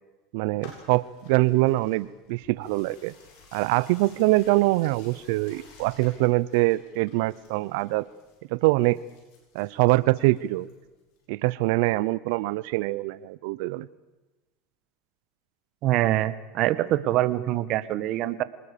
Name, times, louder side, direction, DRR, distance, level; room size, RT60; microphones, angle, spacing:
voice 1, 0.3-3.1 3.5-8.0 8.5-9.0 9.5-10.7 11.3-13.9, right 20 dB, 70° right, 19 dB, 0.7 m, -24 dB
sound 1, 0.6-11.2, left 4 dB, 70° left, 7.8 m, -54 dB
voice 2, 15.8-18.4, right 14 dB, 55° right, 15 dB, 1.4 m, -24 dB
26.0 x 19.5 x 6.8 m, 1.1 s
supercardioid pair, 105°, 0 cm